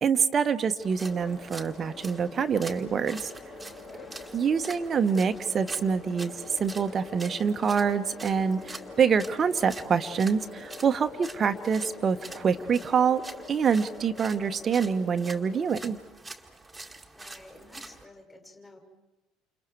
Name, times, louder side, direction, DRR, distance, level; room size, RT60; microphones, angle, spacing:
voice 1, 0.0-3.3 4.3-13.2 13.5-16.0, right 6 dB, 35° right, 9 dB, 1.2 m, -26 dB
sound 1, 0.8-18.0, right 2 dB, 10° right, 2.1 m, -46 dB
sound 2, 1.0-15.7, left 3 dB, 40° left, 2.5 m, -45 dB
voice 2, 3.8-4.3 17.1-18.8, left 2 dB, 20° left, 1 dB, 6.1 m, -52 dB
29.5 x 28.5 x 4.7 m, 1.1 s
figure-of-eight pair, 60°, 0 cm